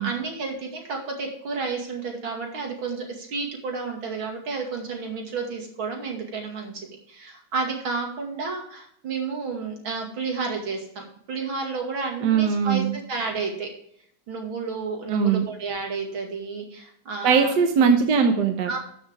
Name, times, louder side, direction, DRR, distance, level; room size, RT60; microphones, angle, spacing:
voice 1, 0.0-6.7 7.1-13.7 14.3-17.5 18.7-18.8, right 4 dB, 80° right, 1 dB, 3.0 m, -31 dB
voice 2, 12.2-12.9 15.1-15.4 17.2-18.8, right 6 dB, 60° right, 5 dB, 1.6 m, -20 dB
13.0 x 6.5 x 3.6 m, 0.68 s
omnidirectional pair, 2.2 m